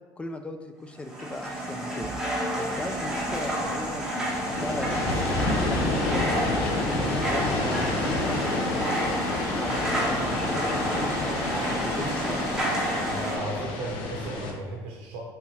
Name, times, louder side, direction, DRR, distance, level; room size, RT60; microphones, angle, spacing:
voice 1, 0.2-2.1 2.6-6.2 6.6-9.1 9.5-12.5, left 2 dB, 15° left, 6 dB, 0.3 m, -38 dB
sound 1, 1.0-13.4, right 1 dB, 10° right, 1.0 m, -30 dB
sound 2, 2.7-14.5, left 2 dB, 80° left, 0.7 m, -29 dB
voice 2, 13.1-15.2, right 1 dB, 85° right, -1 dB, 0.6 m, -35 dB
3.4 x 2.8 x 4.4 m, 1.4 s
cardioid pair, 115°, 9 cm